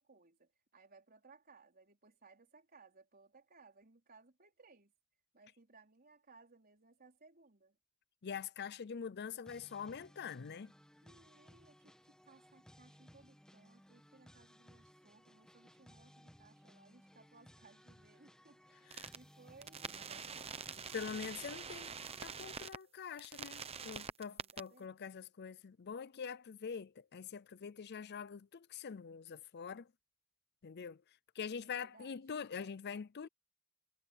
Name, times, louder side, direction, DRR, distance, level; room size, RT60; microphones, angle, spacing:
voice 1, 0.0-4.9 5.3-7.8 11.0-20.8 24.2-25.1 31.6-32.4, right 3 dB, 45° right, 4.4 m, -64 dB
voice 2, 8.2-10.7 18.9-19.1 20.9-21.9 22.2-29.9 30.6-31.0 31.4-33.3, left 6 dB, 50° left, 0.5 m, -44 dB
sound 1, 9.4-22.3, equal, 5° left, 1.2 m, -62 dB
sound 2, 18.9-19.2 19.6-22.8 23.2-24.6, right 6 dB, 30° right, 0.9 m, -45 dB
head